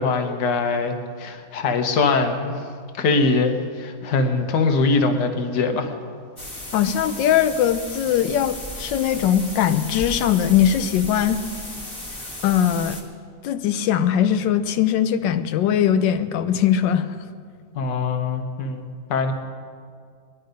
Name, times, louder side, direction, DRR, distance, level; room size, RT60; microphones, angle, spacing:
voice 1, 0.0-2.6 3.0-5.9 17.7-19.3, left 3 dB, 65° left, 5 dB, 1.7 m, -22 dB
sound 1, 6.4-13.0, left 1 dB, 15° left, 1.6 m, -35 dB
voice 2, 6.7-11.4 12.4-13.0 13.4-17.1, left 9 dB, 85° left, 11 dB, 1.4 m, -20 dB
20.0 x 11.0 x 5.2 m, 2.1 s
omnidirectional pair, 2.0 m